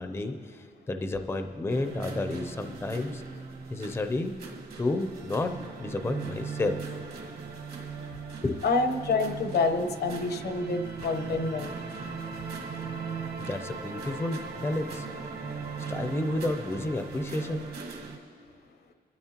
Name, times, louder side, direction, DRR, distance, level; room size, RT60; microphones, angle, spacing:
voice 1, 0.0-3.2 3.7-4.3 4.8-6.8 8.4-8.6 13.4-15.1 15.9-17.7, left 2 dB, 15° left, 7 dB, 0.5 m, -31 dB
sound 1, 1.7-18.2, right 5 dB, 70° right, 1.7 m, -38 dB
voice 2, 8.6-11.7, left 3 dB, 80° left, 8 dB, 1.0 m, -27 dB
26.0 x 12.5 x 2.9 m, 2.3 s
wide cardioid pair, 170°, 17 cm